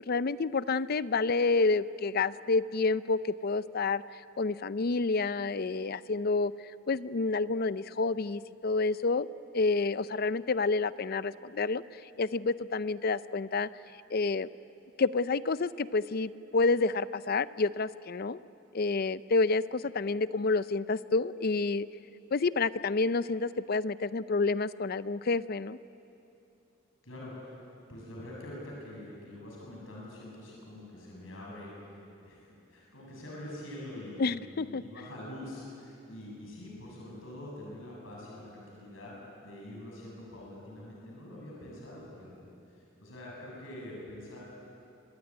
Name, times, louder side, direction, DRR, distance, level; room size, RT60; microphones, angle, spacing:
voice 1, 0.1-6.5 6.9-9.3 9.5-13.7 14.1-14.5 15.0-18.4 18.7-21.9 22.3-25.8 34.2-34.8, left 3 dB, 50° left, 16 dB, 0.5 m, -29 dB
voice 2, 27.0-27.6 27.9-44.4, left 1 dB, 80° left, -3 dB, 7.3 m, -45 dB
26.0 x 20.0 x 9.8 m, 2.8 s
head